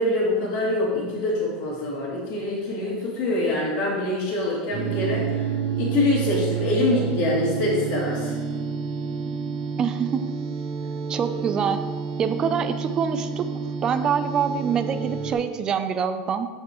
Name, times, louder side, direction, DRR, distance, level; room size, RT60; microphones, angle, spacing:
voice 1, 0.0-5.5 5.8-8.3, left 2 dB, 40° left, -4 dB, 2.6 m, -25 dB
sound 1, 4.7-15.3, right 6 dB, 85° right, 2.8 m, -29 dB
voice 2, 9.8-10.2 11.1-11.8 12.2-13.5 13.8-16.5, right 7 dB, 20° right, 9 dB, 0.4 m, -25 dB
14.5 x 5.3 x 3.1 m, 1.4 s
supercardioid pair, 180°, 4 cm